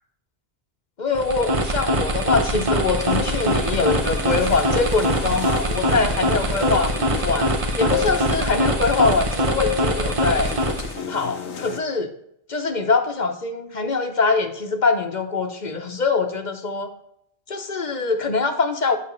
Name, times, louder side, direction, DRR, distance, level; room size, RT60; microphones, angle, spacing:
voice 1, 1.0-6.9 7.2-10.5 11.1-12.1 12.5-16.9 17.5-19.0, left 4 dB, 45° left, 6 dB, 0.9 m, -23 dB
sound 1, 1.1-11.0, right 1 dB, 35° right, 0.7 m, -23 dB
sound 2, 3.0-11.8, left 8 dB, 90° left, 1.1 m, -32 dB
8.5 x 6.1 x 3.1 m, 0.72 s
omnidirectional pair, 1.1 m